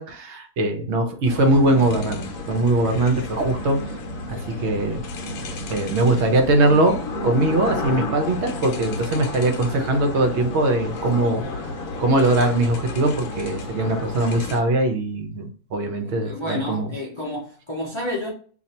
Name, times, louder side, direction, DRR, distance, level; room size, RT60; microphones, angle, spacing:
voice 1, 0.0-3.8 4.3-5.0 5.7-7.0 7.2-11.6 12.0-16.9, right 2 dB, 60° right, 0.8 m, -21 dB
sound 1, 1.3-14.6, left 2 dB, 65° left, 1.0 m, -32 dB
sound 2, 11.4-17.7, left 4 dB, 15° right, 1.0 m, -50 dB
voice 2, 16.0-18.3, left 1 dB, 30° left, 0.5 m, -30 dB
2.7 x 2.5 x 4.2 m
omnidirectional pair, 1.6 m